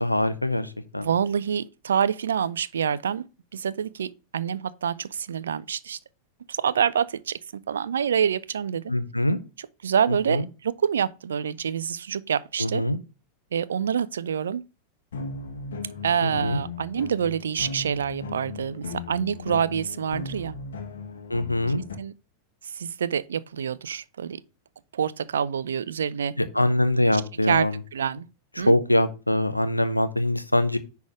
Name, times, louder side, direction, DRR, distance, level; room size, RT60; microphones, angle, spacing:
voice 1, 0.0-1.1 8.9-9.4 10.1-10.4 12.6-13.0 16.2-16.6 21.3-21.8 26.4-27.8 28.6-30.8, left 1 dB, 85° left, 0.8 m, -23 dB
voice 2, 0.9-3.2 3.5-6.0 6.5-8.8 9.6-12.8 13.5-14.6 16.0-20.5 22.0-22.1 22.6-24.4 24.9-26.3 27.1-27.2 27.5-28.3 28.6-28.8, right 8 dB, 65° right, 0.5 m, -27 dB
sound 1, 15.1-22.0, left 3 dB, 65° left, 1.3 m, -37 dB
10.0 x 3.6 x 6.2 m
figure-of-eight pair, 90°, 0 cm